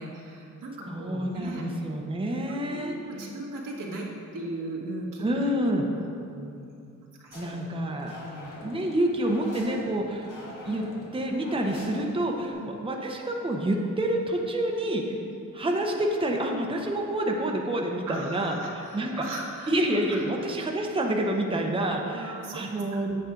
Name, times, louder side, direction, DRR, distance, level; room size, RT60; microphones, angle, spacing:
voice 1, 0.0-1.6 2.2-4.1 4.3-6.7 7.2-7.4 8.2-8.5 9.6-9.8 12.4-12.7 15.2-15.3 18.1-20.5 22.0-23.2, right 2 dB, 85° right, -3 dB, 1.6 m, -38 dB
voice 2, 0.9-2.9 5.2-5.8 7.3-8.2 8.6-10.3 10.6-10.8 11.1-15.1 15.5-18.6 18.9-19.1 19.7-23.1, right 1 dB, 15° right, 0 dB, 0.8 m, -28 dB
sound 1, 7.3-12.5, left 1 dB, 80° left, 1.7 m, -44 dB
8.4 x 7.7 x 3.8 m, 2.6 s
cardioid pair, 95°, 31 cm